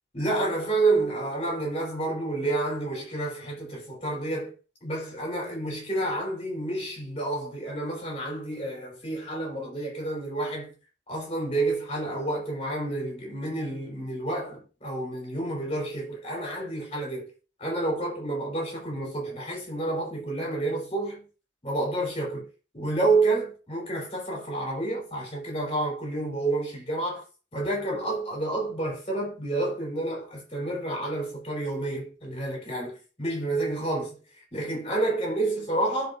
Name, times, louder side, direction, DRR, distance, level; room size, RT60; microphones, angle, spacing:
voice 1, 0.1-4.5 4.8-10.7 11.1-17.3 17.6-21.3 21.6-22.4 22.7-27.2 27.5-34.2 34.5-36.1, right 2 dB, 30° left, 5.1 m, -29 dB
11.0 x 5.9 x 2.9 m
head